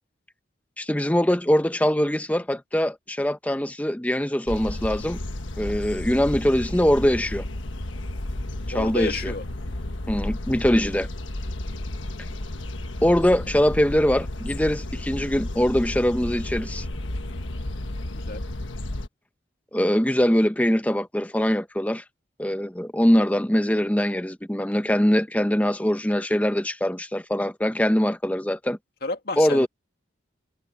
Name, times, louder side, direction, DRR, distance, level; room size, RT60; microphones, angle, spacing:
voice 1, 0.8-5.2 5.6-7.5 8.7-9.3 10.1-11.1 13.0-16.9 19.7-22.0 22.4-28.8 29.4-29.7, equal, 10° left, 0.6 m, -22 dB
sound 1, 4.5-19.1, left 1 dB, 80° left, 1.4 m, -32 dB
voice 2, 8.7-9.4 18.3-18.4 29.0-29.7, left 3 dB, 50° left, 2.0 m, -30 dB
head